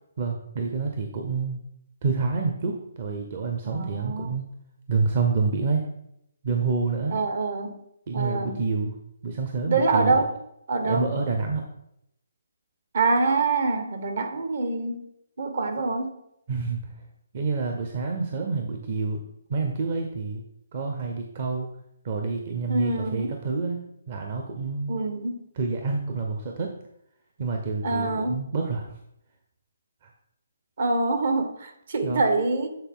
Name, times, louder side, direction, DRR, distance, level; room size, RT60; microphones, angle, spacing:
voice 1, 0.2-1.6 2.0-4.4 4.9-5.8 6.4-7.2 8.1-9.0 9.2-10.1 10.8-11.6 16.5-16.9 17.3-19.2 19.5-20.4 20.7-21.7 22.0-25.0 25.6-26.7 27.4-28.9 30.0-30.1 32.0-32.2, right 4 dB, 45° right, 3 dB, 0.7 m, -28 dB
voice 2, 3.6-4.4 7.1-7.8 8.1-8.6 9.7-10.4 10.7-11.1 12.9-15.1 15.4-16.2 22.7-23.4 24.9-25.4 27.8-28.4 30.8-32.7, right 3 dB, 60° right, 6 dB, 1.0 m, -25 dB
8.1 x 4.0 x 3.6 m, 0.78 s
hypercardioid pair, 150°, 0 cm